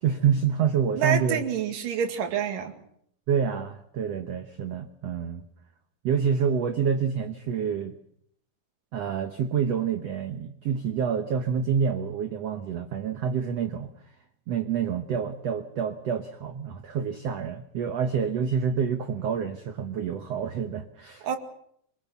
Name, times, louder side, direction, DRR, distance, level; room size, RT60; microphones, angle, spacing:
voice 1, 0.0-1.4 3.3-5.4 6.0-8.0 8.9-13.9 14.5-21.3, right 7 dB, 90° right, 7 dB, 1.4 m, -27 dB
voice 2, 1.0-2.7 21.2-21.4, right 8 dB, 60° right, 4 dB, 3.7 m, -27 dB
26.5 x 19.5 x 7.1 m, 0.70 s
omnidirectional pair, 4.5 m